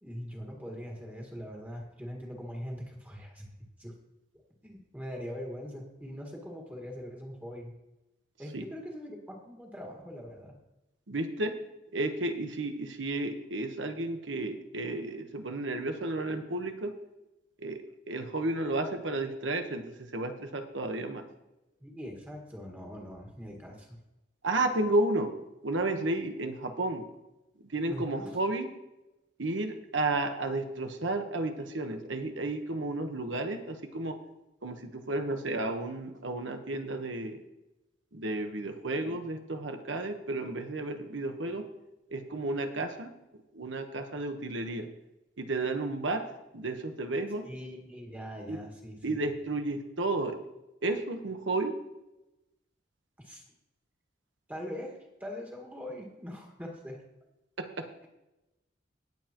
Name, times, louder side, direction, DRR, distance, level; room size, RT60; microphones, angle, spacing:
voice 1, 0.0-3.5 3.8-3.9 4.6-7.7 8.4-10.6 21.8-24.0 27.9-28.4 47.4-49.2 53.2-53.4 54.5-57.0, equal, 10° right, 0 dB, 1.8 m, -42 dB
voice 2, 11.1-11.6 11.9-16.9 17.6-21.3 24.4-25.3 25.6-27.0 27.7-28.7 29.4-34.2 34.6-37.4 38.1-41.7 42.1-43.1 43.5-44.9 45.4-46.2 46.5-47.5 48.5-48.7 49.0-50.4 50.8-51.7 57.6-57.9, right 2 dB, 90° right, 6 dB, 1.2 m, -32 dB
18.5 x 7.3 x 3.0 m, 0.96 s
head